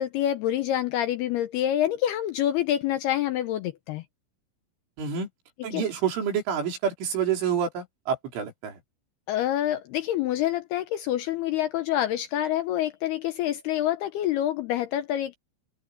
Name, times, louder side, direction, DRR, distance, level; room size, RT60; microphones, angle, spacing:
voice 1, 0.0-4.0 5.6-5.9 9.3-15.4, left 12 dB, 80° left, 2.4 m, -27 dB
voice 2, 5.0-5.3 5.6-8.7, right 7 dB, 75° right, 7.0 m, -28 dB
open air
omnidirectional pair, 5.6 m